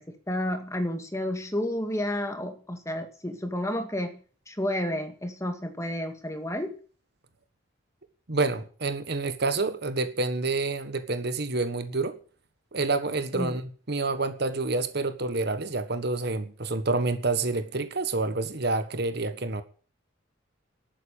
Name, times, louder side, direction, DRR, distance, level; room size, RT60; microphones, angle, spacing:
voice 1, 0.0-6.8 13.3-13.5, left 1 dB, 15° left, 2.1 m, -31 dB
voice 2, 8.3-12.2 12.7-13.6 13.9-19.6, right 3 dB, 55° right, 1.4 m, -28 dB
12.0 x 9.0 x 8.8 m
head